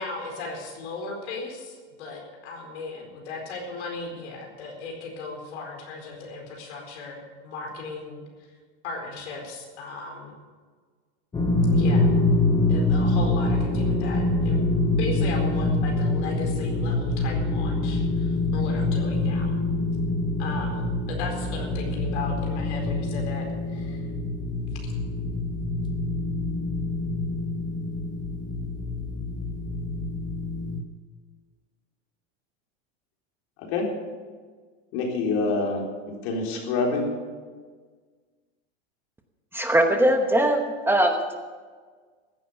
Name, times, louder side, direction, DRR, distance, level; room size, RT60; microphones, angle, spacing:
voice 1, 0.0-1.7 2.0-8.2 8.8-10.3 11.7-12.1 12.7-14.7 15.0-18.0 18.5-19.5 20.4-23.5 23.7-24.0, left 4 dB, 80° left, 2 dB, 4.5 m, -36 dB
sound 1, 11.3-30.8, left 2 dB, 15° left, 1.2 m, -25 dB
voice 2, 34.9-37.1, left 3 dB, 60° left, 0 dB, 4.0 m, -26 dB
voice 3, 39.5-41.4, right 1 dB, 5° right, 4 dB, 1.0 m, -21 dB
15.5 x 9.4 x 7.0 m, 1.5 s
supercardioid pair, 130°, 34 cm